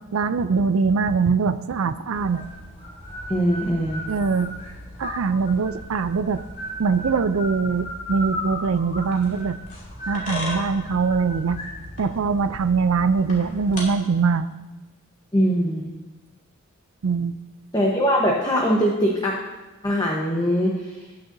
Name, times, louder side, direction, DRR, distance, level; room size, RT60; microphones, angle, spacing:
voice 1, 0.1-2.4 4.1-4.5 5.0-6.4 6.8-9.6 10.1-11.6 12.0-14.5 17.0-17.3, right 5 dB, 80° right, 12 dB, 0.5 m, -22 dB
sound 1, 2.1-13.8, equal, 35° left, 2.6 m, -35 dB
voice 2, 3.3-4.0 15.3-15.9 17.7-19.3 19.8-20.7, equal, 20° left, -2 dB, 1.0 m, -21 dB
18.5 x 6.5 x 2.7 m, 1.2 s
head